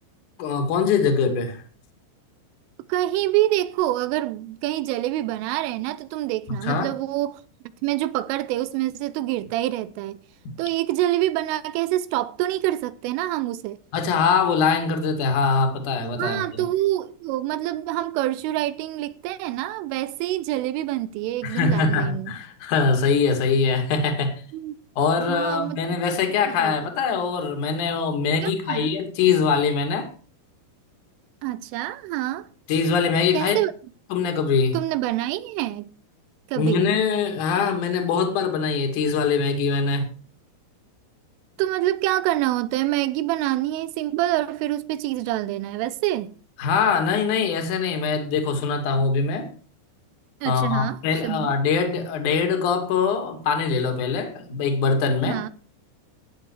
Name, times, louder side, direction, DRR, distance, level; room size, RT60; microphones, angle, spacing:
voice 1, 0.4-1.6 6.6-6.9 13.9-16.6 21.4-24.3 25.0-30.1 32.7-33.6 34.1-34.7 36.6-40.1 46.6-49.5 50.4-55.4, left 5 dB, 45° left, 3.2 m, -23 dB
voice 2, 2.9-7.4 7.8-10.2 10.6-13.8 16.2-22.3 24.5-24.8 25.3-25.8 26.5-26.8 28.4-28.9 31.4-32.5 33.3-33.7 34.7-35.9 36.5-36.9 41.6-46.3 50.4-51.5 55.3-55.5, right 15 dB, 80° right, 3.1 m, -26 dB
15.5 x 9.9 x 4.8 m
omnidirectional pair, 5.9 m